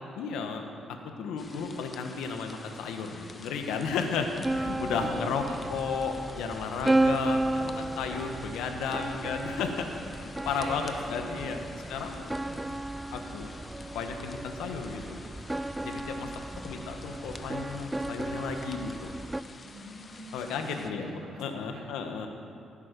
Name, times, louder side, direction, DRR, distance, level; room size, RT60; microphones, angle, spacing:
voice 1, 0.2-0.6 0.9-5.4 5.7-9.9 10.1-11.6 11.9-12.3 13.1-13.5 13.8-15.2 15.8-16.3 16.6-19.1 20.3-22.3, left 5 dB, 90° left, 5 dB, 1.2 m, -34 dB
sound 1, 1.4-20.9, left 4 dB, 35° left, 0.9 m, -49 dB
sound 2, 4.4-19.4, right 2 dB, 10° right, 0.3 m, -33 dB
voice 2, 4.8-6.0 6.9-8.0 10.4-11.8 12.4-12.7 16.4-17.1 19.6-21.8, right 2 dB, 75° right, -2 dB, 3.4 m, -46 dB
16.0 x 8.7 x 5.2 m, 2.4 s
cardioid pair, 90°, 0 cm